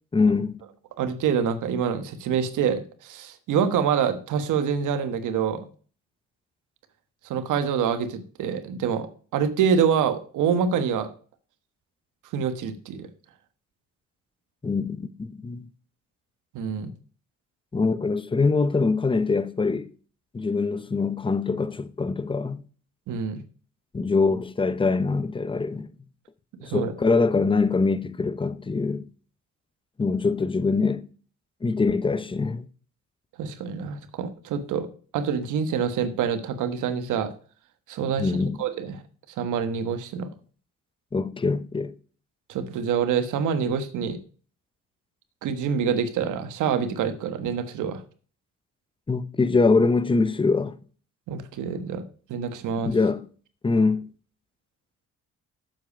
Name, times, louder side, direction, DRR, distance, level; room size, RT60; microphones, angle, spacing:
voice 1, 0.1-0.6 14.6-15.6 17.7-19.9 20.3-22.6 23.9-25.9 26.7-29.0 30.0-31.0 31.6-32.7 38.2-38.6 41.1-41.9 49.1-50.7 52.8-53.2 53.6-54.0, left 4 dB, 15° left, 0.7 m, -23 dB
voice 2, 1.0-5.7 7.3-9.1 9.3-11.1 12.3-13.1 16.5-16.9 23.1-23.4 26.6-26.9 33.4-34.9 35.1-37.3 37.9-38.3 38.6-39.0 39.4-40.3 42.5-44.2 45.4-48.0 51.3-52.0 52.3-52.9, right 7 dB, 85° right, 1.3 m, -26 dB
7.8 x 7.2 x 5.2 m
cardioid pair, 90°, 30 cm